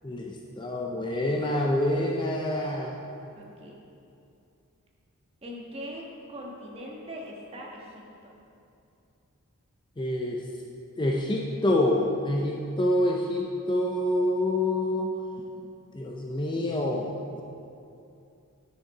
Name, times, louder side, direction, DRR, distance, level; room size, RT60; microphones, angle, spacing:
voice 1, 0.0-2.9 10.0-10.4 11.0-15.5 15.9-17.4, left 1 dB, 20° left, 0 dB, 0.5 m, -27 dB
voice 2, 3.3-3.8 5.4-8.3, equal, 25° right, -2 dB, 1.4 m, -41 dB
10.5 x 6.6 x 4.8 m, 2.7 s
head